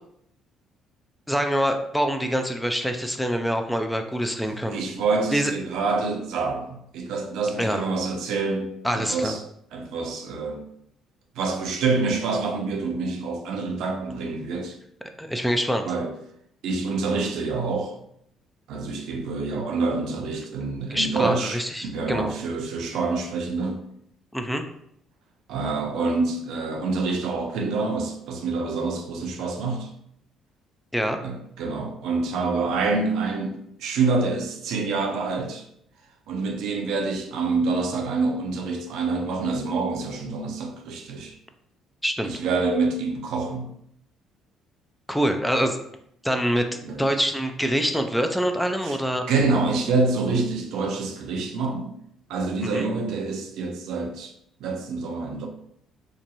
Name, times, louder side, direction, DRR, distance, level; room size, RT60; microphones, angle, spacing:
voice 1, 1.3-4.8 5.3-5.5 7.6-7.8 8.8-9.4 15.2-15.8 20.9-22.3 24.3-24.6 30.9-31.2 42.0-42.3 45.1-45.8 46.2-46.7 47.0-49.3 52.6-52.8, equal, 5° left, 0.4 m, -25 dB
voice 2, 4.5-9.4 9.7-10.6 11.3-14.8 15.8-16.1 16.6-18.0 18.7-23.8 25.5-29.9 31.2-35.7 36.3-41.4 42.2-43.7 46.8-47.0 48.8-49.0 49.3-52.0 52.3-54.3 54.6-55.5, right 3 dB, 70° right, 0.4 m, -27 dB
2.8 x 2.2 x 2.6 m
hypercardioid pair, 55°, 0 cm